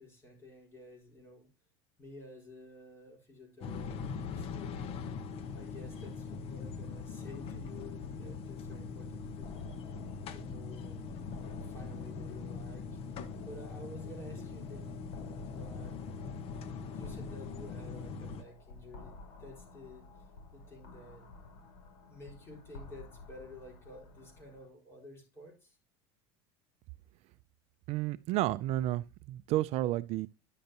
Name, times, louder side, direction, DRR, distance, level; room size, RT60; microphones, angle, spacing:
voice 1, 0.0-1.5 2.0-4.9 5.5-9.6 10.3-13.0 13.4-15.9 16.9-19.1 19.4-21.4 22.1-25.8, left 1 dB, 15° left, 4.3 m, -52 dB
sound 1, 3.6-18.4, left 5 dB, 45° left, 0.9 m, -42 dB
sound 2, 9.4-24.7, left 3 dB, 65° left, 3.1 m, -52 dB
voice 2, 27.9-30.3, right 15 dB, 50° right, 0.4 m, -31 dB
10.5 x 6.6 x 2.9 m
supercardioid pair, 135°, 14 cm